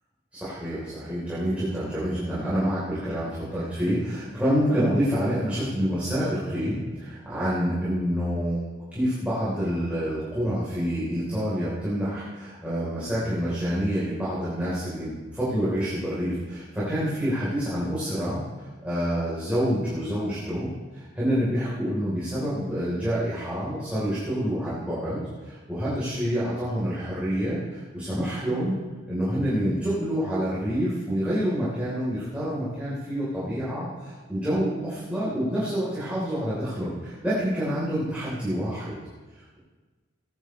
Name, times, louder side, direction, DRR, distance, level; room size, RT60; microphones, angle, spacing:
voice 1, 0.3-8.6 8.9-28.7 29.1-39.0 39.3-39.6, equal, 10° right, -11 dB, 3.7 m, -27 dB
18.5 x 10.0 x 3.2 m, 1.3 s
head